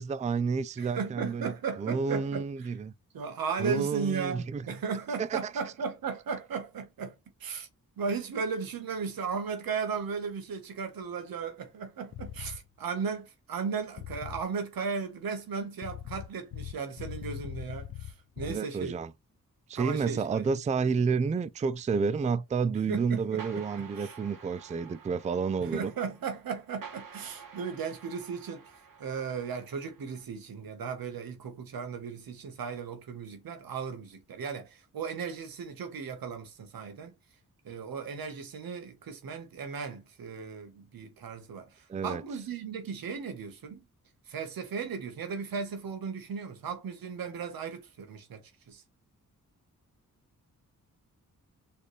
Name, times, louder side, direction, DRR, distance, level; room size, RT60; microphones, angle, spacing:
voice 1, 0.0-1.5 1.8-2.8 3.6-4.6 5.2-5.4 18.4-19.1 19.7-25.9 41.9-42.2, right 5 dB, 20° right, 0.3 m, -30 dB
voice 2, 0.8-2.8 3.1-7.1 7.4-7.7 8.0-19.0 19.7-20.5 22.7-24.2 25.6-37.1 37.6-43.8 44.3-48.8, right 5 dB, 90° right, 1.3 m, -36 dB
sound 1, 12.1-12.6 14.0-14.5 15.8-18.6, left 11 dB, 90° left, 0.5 m, -40 dB
sound 2, 23.4-30.2, right 6 dB, 70° right, 1.5 m, -50 dB
4.1 x 3.4 x 3.1 m
cardioid pair, 75°, 34 cm